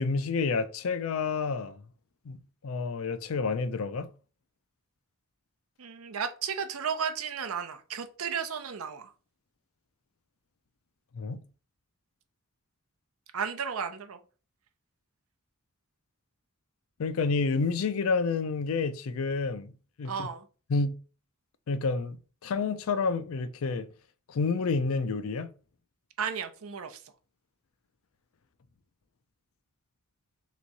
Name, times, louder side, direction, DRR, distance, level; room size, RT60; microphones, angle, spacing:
voice 1, 0.0-1.8 2.3-2.4 2.6-4.1 11.1-11.4 17.0-19.7 20.0-20.3 20.7-20.9 21.7-23.9 24.3-25.5, left 4 dB, 70° left, 0.4 m, -29 dB
voice 2, 5.8-9.1 13.3-14.2 20.0-20.4 26.2-27.0, right 6 dB, 75° right, 0.6 m, -34 dB
3.5 x 3.0 x 4.0 m
head